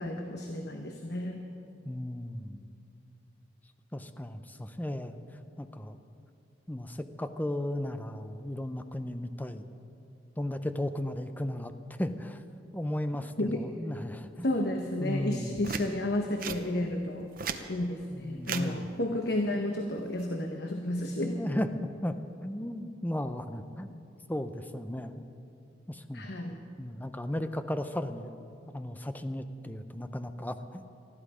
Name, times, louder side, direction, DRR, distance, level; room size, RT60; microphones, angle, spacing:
voice 1, 0.0-1.4 13.4-13.6 14.4-17.3 17.7-21.4 26.1-26.6, left 1 dB, 60° left, 3 dB, 1.0 m, -32 dB
voice 2, 1.8-2.6 3.9-5.2 5.6-6.0 6.7-9.6 10.4-11.7 12.0-12.4 12.7-14.5 15.0-15.6 18.1-18.8 21.2-21.7 22.0-22.2 22.4-24.0 24.3-25.2 25.9-26.3 26.8-28.4 28.7-30.8, left 1 dB, 10° left, 10 dB, 0.6 m, -35 dB
sound 1, 15.6-15.9 16.4-16.6 17.2-17.6 18.4-18.7 20.0-20.2, right 6 dB, 50° right, 0.8 m, -35 dB
20.0 x 13.5 x 5.0 m, 2.7 s
head